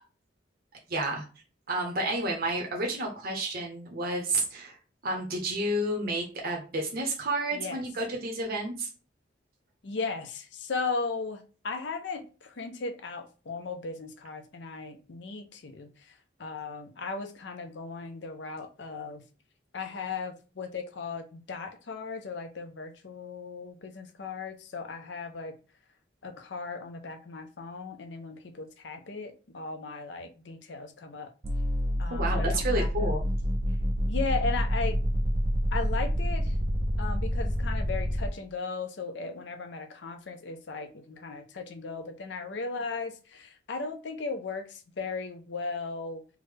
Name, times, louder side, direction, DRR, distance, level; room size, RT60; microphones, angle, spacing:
voice 1, 0.9-1.3 1.7-4.8 5.0-8.9 32.1-33.2, right 1 dB, 55° right, 0 dB, 0.7 m, -30 dB
voice 2, 7.5-7.8 9.8-19.2 19.7-25.5 26.2-31.3 32.0-33.1 34.1-35.0 35.7-36.6 37.0-46.2, left 4 dB, 70° left, 6 dB, 0.6 m, -37 dB
sound 1, 31.4-38.3, equal, 25° right, 0.4 m, -28 dB
3.5 x 2.1 x 3.2 m, 0.35 s
head